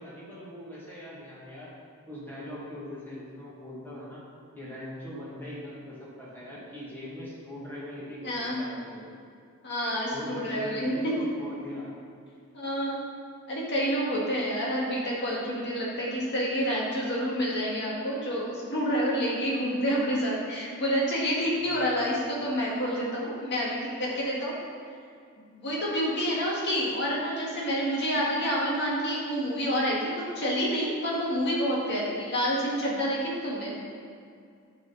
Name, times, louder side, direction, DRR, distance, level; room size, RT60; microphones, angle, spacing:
voice 1, 0.0-1.7 2.1-4.2 4.5-9.1 10.1-11.9 21.6-22.2, left 1 dB, 10° left, -8 dB, 2.2 m, -41 dB
voice 2, 8.2-8.6 9.6-11.0 12.5-13.0 13.5-24.5 25.5-33.7, equal, 50° left, -5 dB, 2.0 m, -28 dB
9.8 x 6.4 x 4.1 m, 2.3 s
head